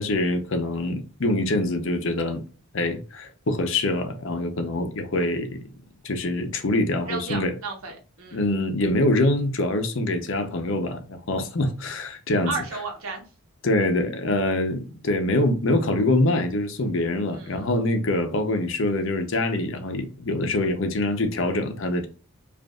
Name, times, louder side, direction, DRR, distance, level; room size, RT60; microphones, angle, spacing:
voice 1, 0.0-2.4 2.7-5.7 6.0-7.5 8.3-12.5 13.6-22.1, left 2 dB, 60° left, 0.7 m, -24 dB
voice 2, 7.1-8.6 12.5-13.2 17.3-17.6, right 4 dB, 70° right, 1.2 m, -34 dB
5.1 x 2.5 x 2.3 m
head